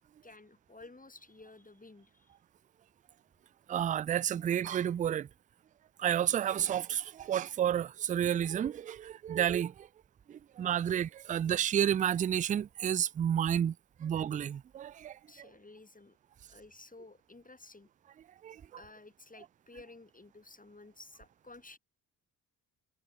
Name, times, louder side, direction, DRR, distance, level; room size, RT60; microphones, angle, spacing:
voice 1, 0.2-2.3 15.3-16.2 16.5-17.9 18.8-21.8, left 3 dB, 15° left, 5.1 m, -53 dB
voice 2, 3.7-5.3 6.0-9.9 10.3-15.2 18.4-18.6, right 10 dB, 20° right, 0.3 m, -31 dB
figure-of-eight pair, 45°, 48 cm